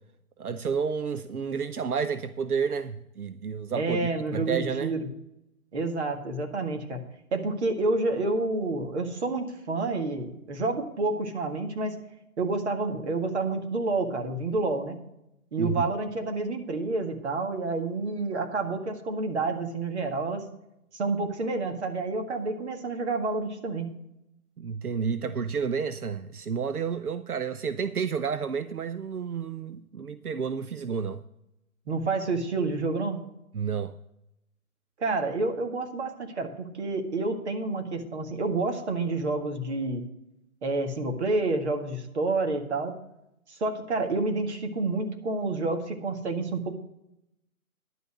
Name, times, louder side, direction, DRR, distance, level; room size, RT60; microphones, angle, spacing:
voice 1, 0.4-4.9 15.6-15.9 24.6-31.2 33.5-34.0, right 6 dB, 85° right, 0.7 m, -30 dB
voice 2, 3.7-5.1 5.7-7.0 7.3-12.0 12.4-15.0 15.5-20.5 20.9-23.9 31.9-33.2 35.0-40.0 40.6-42.9 43.5-46.7, right 3 dB, 50° right, 1.9 m, -29 dB
11.0 x 5.5 x 8.0 m
figure-of-eight pair, 140°, 43 cm